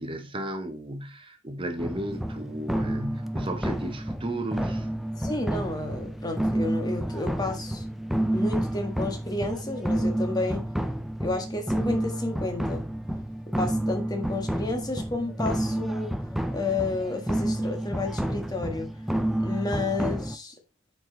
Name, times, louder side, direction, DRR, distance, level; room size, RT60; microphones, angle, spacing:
voice 1, 0.0-4.9, right 1 dB, 25° right, 1.1 m, -34 dB
sound 1, 1.8-20.4, right 1 dB, ahead, 0.4 m, -29 dB
voice 2, 5.2-7.9 8.3-10.7 11.2-12.8 13.6-16.1 16.5-18.9 19.4-20.5, left 2 dB, 20° left, 1.6 m, -31 dB
9.1 x 4.9 x 4.0 m
head